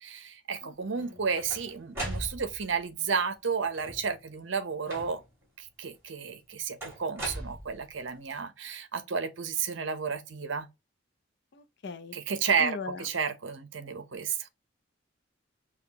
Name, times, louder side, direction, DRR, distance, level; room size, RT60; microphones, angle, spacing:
voice 1, 0.0-5.2 5.6-10.7 12.1-12.7 13.0-14.5, right 6 dB, 70° right, 0.8 m, -32 dB
voice 2, 0.6-1.2 11.5-12.2 12.6-13.1, left 4 dB, 60° left, 0.6 m, -39 dB
sound 1, 0.9-2.8 3.6-4.2 4.9-5.4 6.8-8.1, right 1 dB, 15° right, 2.5 m, -39 dB
5.7 x 2.4 x 2.9 m
head